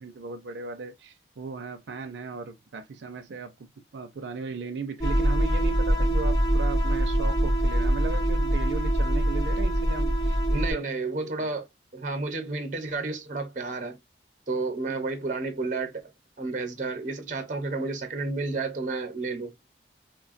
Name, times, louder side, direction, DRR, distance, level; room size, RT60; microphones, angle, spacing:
voice 1, 0.0-3.5 3.9-10.9 11.4-11.5 14.9-15.0, right 4 dB, 85° right, 0.5 m, -37 dB
sound 1, 5.0-10.7, right 1 dB, 20° left, 0.9 m, -24 dB
voice 2, 10.5-11.7 11.9-14.0 14.5-15.9 16.4-19.5, right 3 dB, 45° right, 0.7 m, -31 dB
3.1 x 2.2 x 2.4 m
head